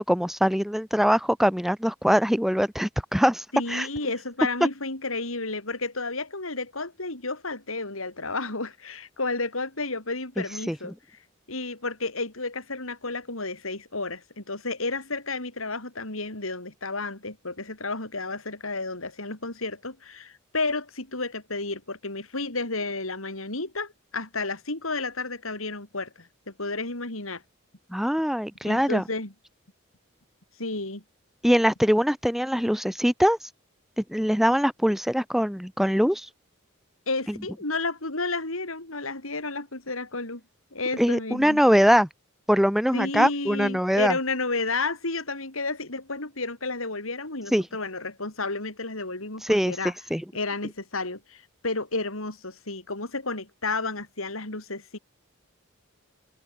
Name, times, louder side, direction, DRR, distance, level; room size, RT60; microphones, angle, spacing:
voice 1, 0.0-3.9 10.4-10.8 27.9-29.0 31.4-33.4 34.0-36.3 37.3-37.4 41.0-42.1 42.5-44.2 47.5-47.7 49.4-50.2, equal, ahead, 2.5 m, -23 dB
voice 2, 3.5-10.9 11.5-27.4 28.6-29.3 30.6-31.0 37.1-40.4 40.7-41.6 42.9-49.9 50.3-55.0, left 3 dB, 90° left, 5.5 m, -32 dB
head